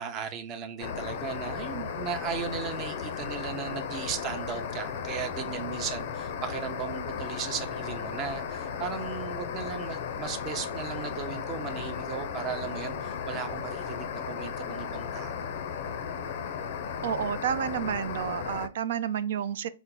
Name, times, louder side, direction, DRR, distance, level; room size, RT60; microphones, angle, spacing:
voice 1, 0.0-15.5, right 7 dB, 35° right, 0.6 m, -36 dB
sound 1, 0.8-18.7, left 7 dB, 60° left, 0.5 m, -35 dB
voice 2, 17.0-19.7, right 9 dB, 65° right, 0.3 m, -30 dB
4.3 x 2.0 x 3.6 m
hypercardioid pair, 115°, 0 cm